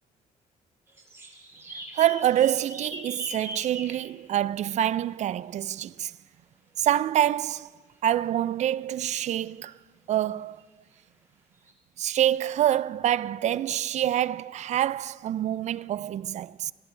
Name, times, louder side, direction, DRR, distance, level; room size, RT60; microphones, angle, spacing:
sound 1, 0.9-4.0 5.3-5.4 10.6-10.7 11.7-11.8, right 2 dB, 15° right, 2.1 m, -40 dB
voice 1, 1.9-6.1 6.8-7.7 8.0-9.8 10.1-10.6 12.0-16.7, right 11 dB, 50° right, 0.4 m, -26 dB
29.0 x 13.5 x 3.3 m
cardioid pair, 100°, 15 cm